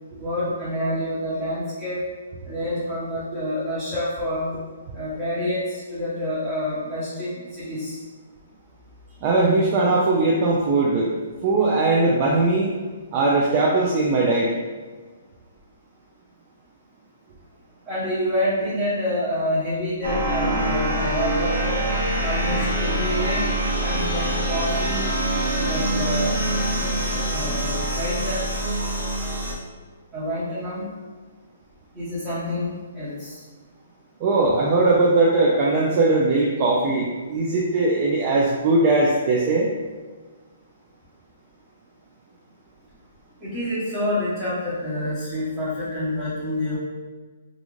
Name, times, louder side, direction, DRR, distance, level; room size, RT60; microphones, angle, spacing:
voice 1, 0.2-2.0 2.4-4.5 4.9-8.0 17.9-21.8 22.2-23.5 23.8-25.1 25.5-26.4 27.3-28.5 30.1-30.9 31.9-33.4 43.4-46.8, left 1 dB, 10° right, -13 dB, 0.9 m, -27 dB
voice 2, 9.2-11.1 11.4-12.7 13.1-14.5 34.2-39.7, right 2 dB, 35° right, -3 dB, 0.4 m, -20 dB
sound 1, 20.0-29.5, right 1 dB, 75° right, 0.8 m, -24 dB
2.5 x 2.4 x 3.0 m, 1.4 s
hypercardioid pair, 140°, 0 cm